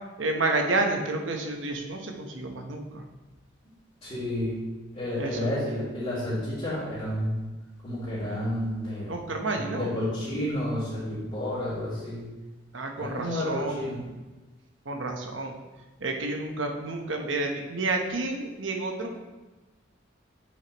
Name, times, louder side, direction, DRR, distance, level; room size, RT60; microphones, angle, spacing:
voice 1, 0.2-3.0 5.2-5.5 9.1-9.9 12.7-14.0 14.9-15.6 16.0-19.2, right 2 dB, 70° right, 3 dB, 1.0 m, -30 dB
voice 2, 4.0-4.5 4.9-7.4 7.8-9.1 9.5-12.3 13.0-14.0, left 1 dB, 30° left, -13 dB, 2.6 m, -30 dB
8.6 x 6.4 x 3.0 m, 1.2 s
head